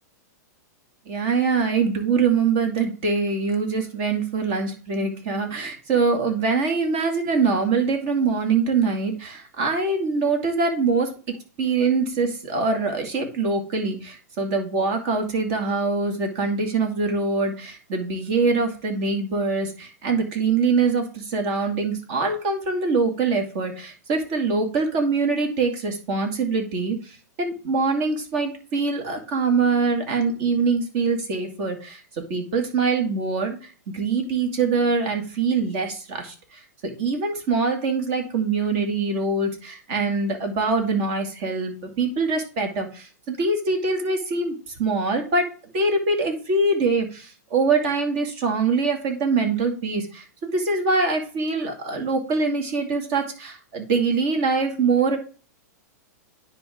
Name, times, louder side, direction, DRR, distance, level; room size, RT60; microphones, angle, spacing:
voice 1, 1.1-11.1 11.6-33.6 33.9-36.6 37.0-45.5 45.7-55.2, right 4 dB, 50° right, 4 dB, 2.3 m, -24 dB
10.0 x 4.6 x 3.7 m, 0.37 s
hypercardioid pair, 115°, 9 cm